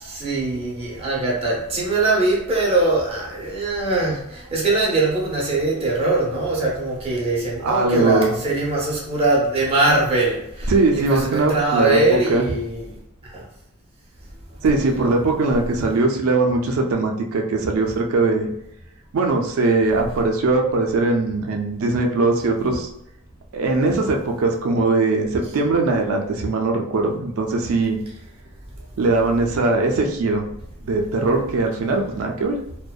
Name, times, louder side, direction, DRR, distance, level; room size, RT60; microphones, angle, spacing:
voice 1, 0.1-4.2 4.5-10.4 10.9-12.8, right 2 dB, 25° right, -4 dB, 0.6 m, -21 dB
voice 2, 7.6-8.3 10.7-12.0 12.3-12.5 14.6-18.5 19.1-22.9 23.5-28.0 29.0-30.5 30.8-32.6, right 3 dB, 75° right, 2 dB, 0.4 m, -20 dB
2.6 x 2.1 x 2.3 m, 0.81 s
head